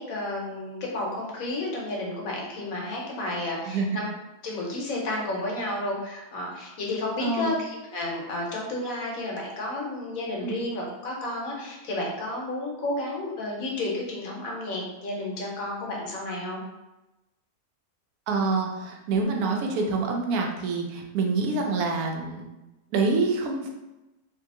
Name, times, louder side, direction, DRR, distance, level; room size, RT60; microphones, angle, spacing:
voice 1, 0.0-4.1 4.4-16.6, left 2 dB, 65° left, -2 dB, 1.1 m, -31 dB
voice 2, 7.2-7.5 10.4-10.6 18.3-22.4 22.9-23.7, right 3 dB, 75° right, 2 dB, 1.1 m, -26 dB
2.8 x 2.6 x 3.6 m, 1.0 s
omnidirectional pair, 1.6 m